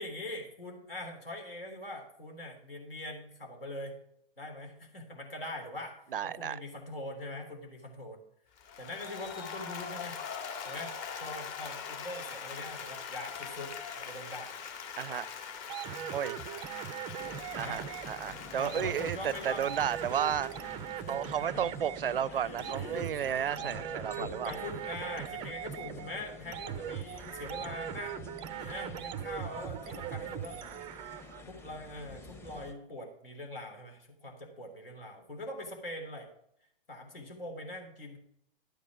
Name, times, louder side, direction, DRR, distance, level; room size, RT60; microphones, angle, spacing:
voice 1, 0.0-3.9 4.4-6.0 6.2-8.2 8.8-10.2 10.7-10.9 11.2-14.6 15.0-15.3 16.5-16.7 17.6-17.8 18.5-19.7 21.0-21.3 22.1-30.6 30.9-36.3 36.9-38.2, left 1 dB, 75° left, 3.5 m, -43 dB
voice 2, 6.1-6.6 15.0-15.2 16.1-16.4 17.6-20.5 21.1-24.5, right 9 dB, 70° right, 0.5 m, -33 dB
Applause, 8.6-21.8, left 6 dB, 35° left, 2.0 m, -43 dB
sound 1, 15.7-31.4, right 10 dB, 20° right, 0.4 m, -41 dB
sound 2, 17.2-32.7, left 3 dB, 10° left, 0.9 m, -49 dB
12.0 x 9.3 x 5.0 m
figure-of-eight pair, 110°, 29 cm